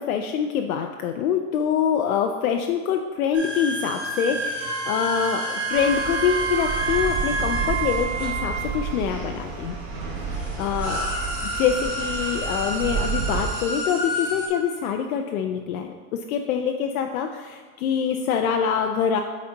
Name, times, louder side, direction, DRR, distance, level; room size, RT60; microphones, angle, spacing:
voice 1, 0.0-9.8 10.2-19.2, left 7 dB, 65° left, 4 dB, 0.6 m, -25 dB
sound 1, 3.3-9.0 9.9-10.0 10.3-14.5, right 1 dB, 5° right, 2.1 m, -30 dB
Wind instrument woodwind instrument, 4.6-8.7, right 5 dB, 80° right, 2.2 m, -30 dB
sound 2, 5.7-13.4, right 4 dB, 35° right, 1.2 m, -31 dB
9.6 x 4.3 x 3.8 m, 1.5 s
supercardioid pair, 165°, 45 cm